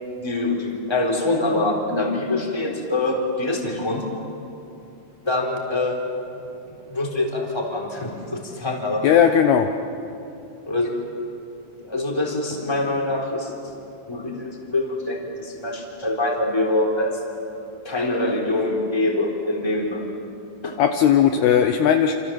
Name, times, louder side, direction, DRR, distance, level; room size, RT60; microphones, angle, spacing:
voice 1, 0.2-4.1 5.2-6.0 6.3-6.5 6.9-9.0 10.7-10.9 11.8-13.7 14.1-20.0 20.6-20.7, left 2 dB, 5° left, -1 dB, 3.1 m, -25 dB
voice 2, 9.0-9.7 20.8-22.1, left 8 dB, 75° left, 6 dB, 2.6 m, -17 dB
28.0 x 27.0 x 7.7 m, 2.7 s
omnidirectional pair, 5.3 m